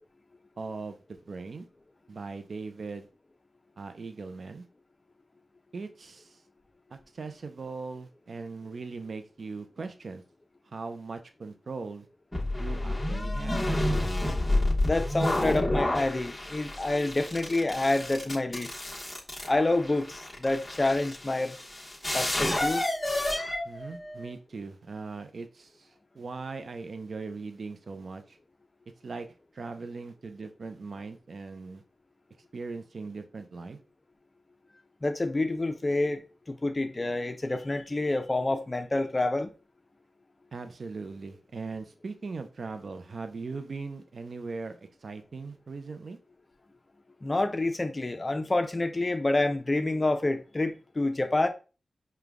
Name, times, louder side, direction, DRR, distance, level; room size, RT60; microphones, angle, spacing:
voice 1, 0.6-1.7 2.1-3.1 3.8-4.7 5.7-6.4 6.9-10.2 10.6-12.1 12.6-13.6 23.6-28.4 29.0-29.3 29.5-31.8 32.5-33.8 40.5-46.2, right 4 dB, 70° right, 0.5 m, -39 dB
sound 1, 12.3-24.3, left 1 dB, 15° left, 1.3 m, -30 dB
voice 2, 14.8-18.7 19.5-21.6 22.1-22.8 35.0-39.5 47.2-51.5, left 2 dB, 35° left, 0.6 m, -28 dB
5.0 x 2.3 x 3.5 m
cardioid pair, 60°, 0 cm